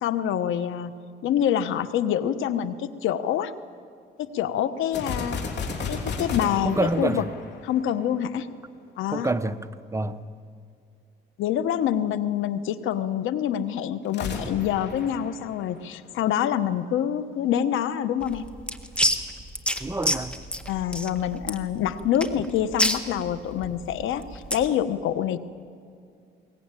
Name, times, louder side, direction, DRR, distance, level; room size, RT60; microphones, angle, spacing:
voice 1, 0.0-0.9 1.2-3.5 4.2-5.4 5.9-7.2 7.7-8.5 9.0-9.3 11.4-18.5 20.7-25.4, left 10 dB, 85° left, 13 dB, 1.0 m, -26 dB
sound 1, 4.9-8.4 14.0-16.1, left 4 dB, 60° left, 3.3 m, -33 dB
voice 2, 6.6-7.3 9.1-9.6 9.9-10.2 19.8-20.4, right 2 dB, 15° right, 11 dB, 0.9 m, -27 dB
sound 2, 18.2-24.7, equal, 5° left, 1.6 m, -28 dB
21.5 x 19.5 x 9.1 m, 2.3 s
cardioid pair, 90°, 20 cm